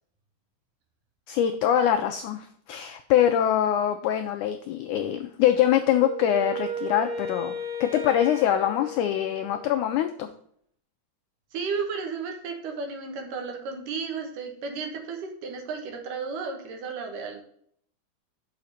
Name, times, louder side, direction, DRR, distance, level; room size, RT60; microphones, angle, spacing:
voice 1, 1.3-10.3, left 10 dB, 90° left, 8 dB, 1.7 m, -24 dB
Wind instrument woodwind instrument, 6.0-9.9, equal, 90° right, 3.5 m, -34 dB
voice 2, 11.5-17.4, right 5 dB, 65° right, 3 dB, 2.8 m, -33 dB
6.9 x 5.0 x 6.4 m, 0.64 s
omnidirectional pair, 4.2 m